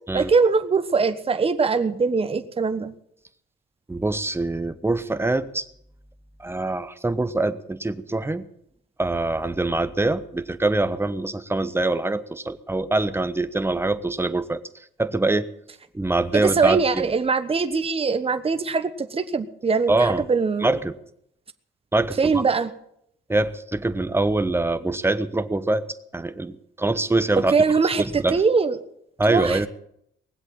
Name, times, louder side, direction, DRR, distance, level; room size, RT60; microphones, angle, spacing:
voice 1, 0.1-2.9 16.3-20.7 22.2-22.7 27.5-28.8 29.3-29.7, right 4 dB, 30° right, 9 dB, 1.2 m, -22 dB
voice 2, 3.9-5.7 6.4-8.5 9.0-14.6 15.0-15.5 15.9-17.1 19.9-20.2 20.6-20.9 21.9-22.4 23.3-25.9 26.1-27.5 28.0-28.4 29.2-29.7, right 2 dB, 10° right, 12 dB, 1.0 m, -24 dB
20.0 x 7.9 x 8.7 m, 0.74 s
cardioid pair, 90°, 20 cm